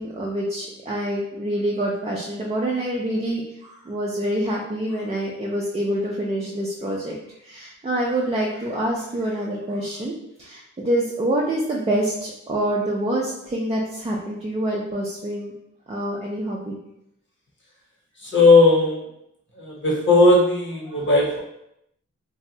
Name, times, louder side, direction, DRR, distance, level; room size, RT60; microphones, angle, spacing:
voice 1, 0.0-7.2 7.4-15.5 15.9-16.8 20.9-21.1, right 1 dB, 20° right, -4 dB, 0.4 m, -26 dB
voice 2, 18.2-19.0 19.6-21.4, left 2 dB, 40° left, -3 dB, 1.0 m, -17 dB
2.7 x 2.1 x 3.8 m, 0.79 s
wide cardioid pair, 125°, 30 cm